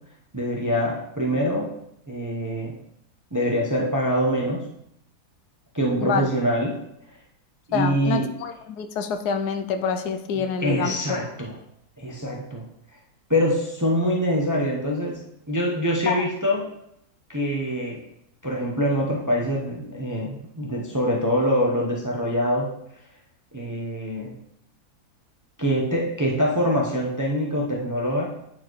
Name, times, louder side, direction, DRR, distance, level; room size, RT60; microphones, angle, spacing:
voice 1, 0.3-1.7 2.1-2.8 3.3-4.6 5.7-6.8 7.7-8.3 10.4-11.5 12.0-12.7 13.3-16.7 17.3-18.0 18.4-22.7 23.5-24.3 25.6-28.3, equal, 20° right, -2 dB, 0.6 m, -24 dB
voice 2, 6.0-6.3 7.7-11.2 16.1-16.2, left 6 dB, 85° left, 8 dB, 1.2 m, -27 dB
9.1 x 4.5 x 3.1 m, 0.77 s
omnidirectional pair, 1.6 m